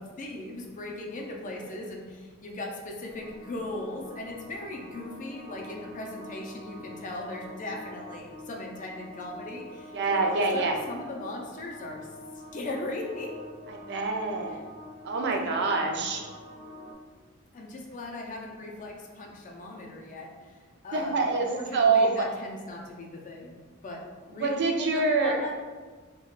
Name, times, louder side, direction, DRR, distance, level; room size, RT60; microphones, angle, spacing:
voice 1, 0.0-12.1 12.5-13.3 15.4-16.1 17.5-20.5 20.8-23.6 23.8-25.6, left 2 dB, 40° left, 0 dB, 0.4 m, -38 dB
sound 1, 3.1-16.9, left 1 dB, 10° right, 0.5 m, -46 dB
voice 2, 9.9-10.8 13.7-14.6 15.0-16.3 20.9-22.2 24.4-25.4, right 3 dB, 55° right, 2 dB, 0.4 m, -26 dB
2.3 x 2.2 x 3.6 m, 1.4 s
head